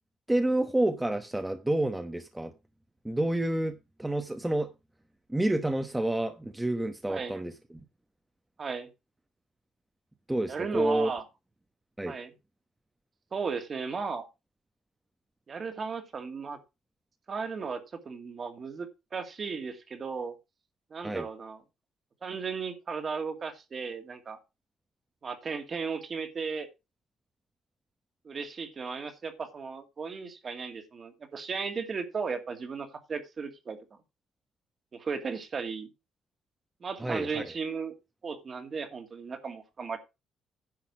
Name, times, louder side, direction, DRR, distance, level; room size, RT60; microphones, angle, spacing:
voice 1, 0.3-2.5 3.0-4.7 5.3-7.5 10.3-11.1 12.0-12.1 21.0-21.3 37.0-37.4, right 1 dB, 10° right, 1.0 m, -29 dB
voice 2, 7.1-7.4 8.6-8.9 10.5-11.2 12.1-12.3 13.3-14.3 15.5-16.6 17.3-20.3 20.9-21.6 22.2-24.4 25.2-26.7 28.2-33.8 34.9-35.9 36.8-37.9 38.2-40.0, right 5 dB, 40° right, 2.1 m, -35 dB
10.5 x 5.8 x 5.9 m
cardioid pair, 110°, 0 cm